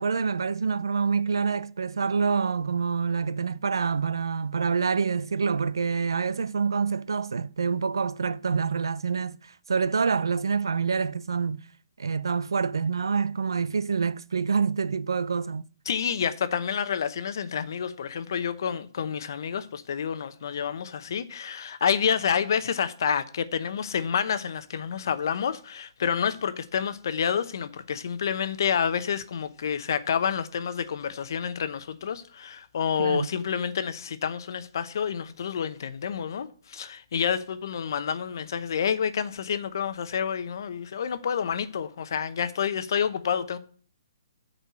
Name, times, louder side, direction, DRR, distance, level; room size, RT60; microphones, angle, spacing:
voice 1, 0.0-9.4 9.7-11.6 12.0-15.6 33.0-33.3, right 5 dB, 80° right, 0.4 m, -26 dB
voice 2, 15.9-43.6, left 7 dB, 60° left, 0.8 m, -29 dB
8.3 x 4.2 x 6.2 m
hypercardioid pair, 145°, 2 cm